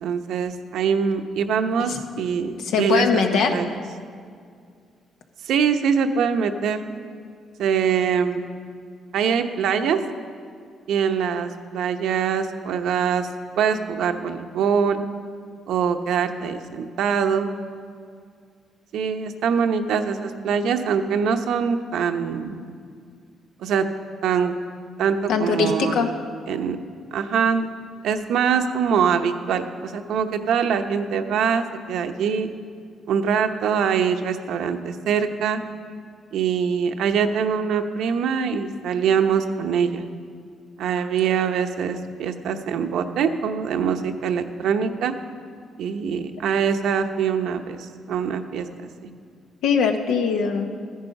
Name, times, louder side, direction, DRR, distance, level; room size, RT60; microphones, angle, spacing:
voice 1, 0.0-3.7 5.4-6.8 7.6-8.5 9.1-10.0 10.9-13.3 13.6-15.0 15.7-17.5 18.9-22.6 23.6-23.8 24.2-24.5 25.0-25.9 26.5-26.8 27.1-27.7 28.0-32.5 33.1-35.6 36.3-40.0 40.8-45.1 45.8-49.1, right 7 dB, 80° right, 7 dB, 0.8 m, -23 dB
voice 2, 2.6-3.6 25.3-26.1 49.6-50.7, left 5 dB, 85° left, 5 dB, 1.1 m, -21 dB
13.5 x 10.5 x 5.3 m, 2.1 s
cardioid pair, 90°, 0 cm